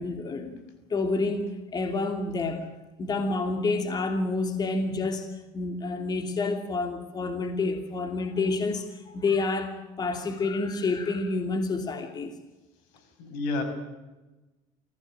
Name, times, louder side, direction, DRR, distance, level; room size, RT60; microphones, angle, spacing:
voice 1, 0.0-2.7 3.0-5.3 5.5-12.3, left 3 dB, 35° left, 6 dB, 2.9 m, -29 dB
voice 2, 12.9-13.6, left 3 dB, 85° left, 8 dB, 6.4 m, -31 dB
25.5 x 16.5 x 9.2 m, 1.1 s
cardioid pair, 110°, 12 cm